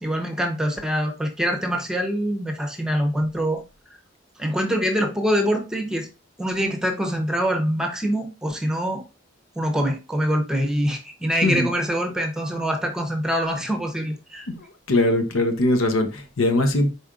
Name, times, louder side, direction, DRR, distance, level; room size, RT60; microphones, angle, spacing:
voice 1, 0.0-3.6 4.4-6.1 6.4-9.0 9.6-14.5, equal, 5° right, 0.7 m, -24 dB
voice 2, 14.5-16.9, left 1 dB, 85° left, 0.8 m, -21 dB
5.0 x 4.2 x 2.4 m
head